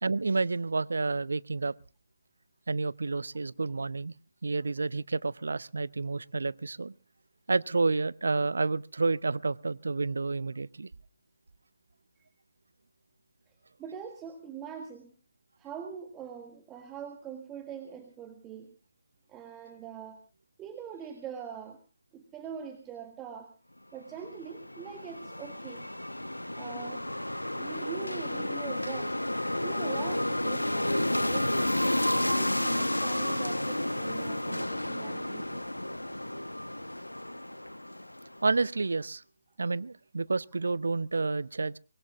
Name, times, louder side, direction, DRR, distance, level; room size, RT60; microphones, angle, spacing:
voice 1, 0.0-1.7 2.7-4.1 4.4-6.9 7.5-10.9 38.4-39.2 39.6-41.8, right 3 dB, 65° right, 0.7 m, -30 dB
voice 2, 13.8-15.1 15.6-18.7 19.3-20.2 20.6-21.8 22.1-23.5 23.9-25.9 26.5-27.1 27.5-29.2 29.6-35.6, right 7 dB, 10° right, 1.5 m, -43 dB
sound 1, 24.2-38.6, left 1 dB, 90° left, 1.0 m, -31 dB
24.0 x 21.5 x 2.5 m
figure-of-eight pair, 150°, 0 cm